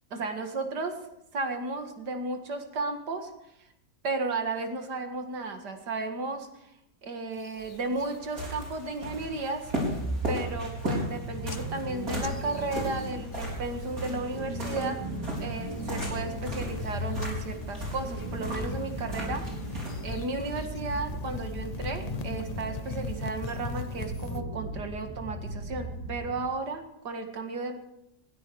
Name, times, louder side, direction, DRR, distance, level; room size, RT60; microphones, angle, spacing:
voice 1, 0.1-1.0 1.3-3.3 4.0-6.7 7.0-9.7 10.3-15.0 15.4-19.5 20.0-27.8, right 3 dB, 85° right, 5 dB, 2.5 m, -34 dB
sound 1, 7.4-8.2 8.6-9.0 9.3-9.7 10.2-10.3 10.5-11.2 11.5-14.1 14.3-14.8 15.4-24.4, left 6 dB, 65° left, 0.4 m, -41 dB
sound 2, 7.6-20.6, equal, 60° right, 5.3 m, -37 dB
sound 3, 9.6-26.5, right 1 dB, 15° right, 4.6 m, -37 dB
20.5 x 13.0 x 4.7 m, 0.82 s
omnidirectional pair, 1.8 m